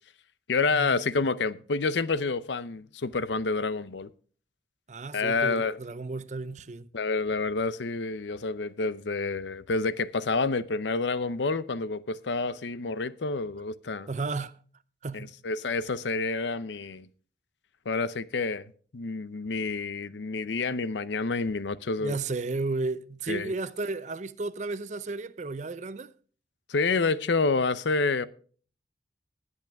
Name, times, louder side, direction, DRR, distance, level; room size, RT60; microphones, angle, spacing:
voice 1, 0.5-4.1 5.1-5.8 6.9-14.1 15.1-17.1 17.9-18.7 18.9-22.2 23.3-23.5 26.7-28.3, left 4 dB, 80° left, 0.7 m, -28 dB
voice 2, 4.9-6.9 14.1-14.6 15.0-15.4 22.0-26.1, right 3 dB, 40° right, 0.5 m, -33 dB
19.5 x 8.2 x 3.5 m
head